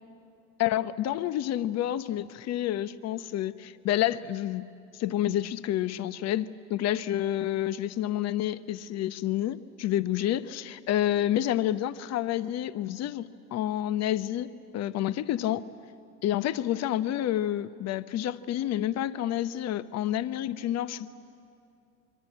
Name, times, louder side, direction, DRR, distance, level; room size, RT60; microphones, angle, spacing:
voice 1, 0.6-4.6 4.9-15.6 16.2-21.1, left 12 dB, 35° left, 14 dB, 0.9 m, -29 dB
25.5 x 23.0 x 8.8 m, 2.5 s
hypercardioid pair, 85°, 45 cm